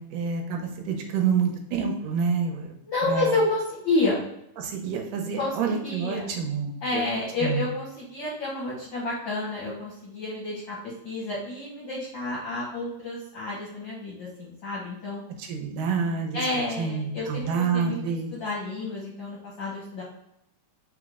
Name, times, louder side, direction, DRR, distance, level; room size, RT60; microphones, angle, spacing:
voice 1, 0.0-2.7 3.1-3.3 4.6-7.1 7.4-7.6 15.4-16.4 16.8-18.3, right 6 dB, 85° right, 3 dB, 2.3 m, -28 dB
voice 2, 2.9-4.3 5.4-6.3 6.8-10.8 11.0-15.2 16.3-20.0, left 2 dB, 75° left, -5 dB, 1.1 m, -30 dB
5.3 x 2.1 x 4.7 m, 0.80 s
omnidirectional pair, 3.6 m